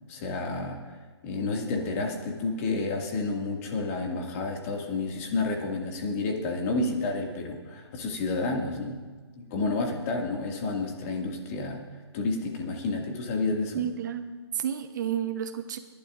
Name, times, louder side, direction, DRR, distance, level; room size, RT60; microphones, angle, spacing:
voice 1, 0.1-1.0 1.2-9.0 9.4-11.8 12.1-13.8, left 3 dB, 30° left, 1 dB, 2.0 m, -30 dB
voice 2, 13.7-15.8, right 9 dB, 45° right, 9 dB, 0.8 m, -31 dB
30.0 x 11.5 x 2.5 m, 1.4 s
hypercardioid pair, 150°, 14 cm